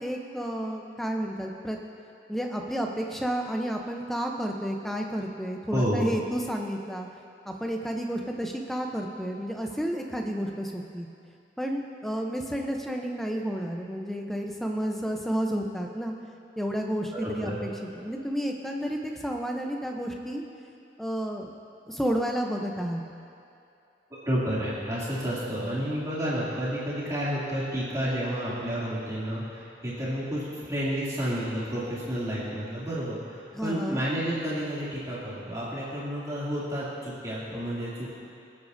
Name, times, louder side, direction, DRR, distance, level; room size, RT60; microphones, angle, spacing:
voice 1, 0.0-1.8 2.3-7.1 7.5-11.1 11.6-16.1 16.6-17.7 17.9-20.4 21.0-21.5 21.9-23.0 33.5-34.0, equal, ahead, 1 dB, 0.7 m, -31 dB
voice 2, 5.7-6.1 17.1-17.6 24.2-38.1, equal, 20° right, -9 dB, 2.6 m, -30 dB
20.5 x 8.4 x 2.7 m, 2.6 s
head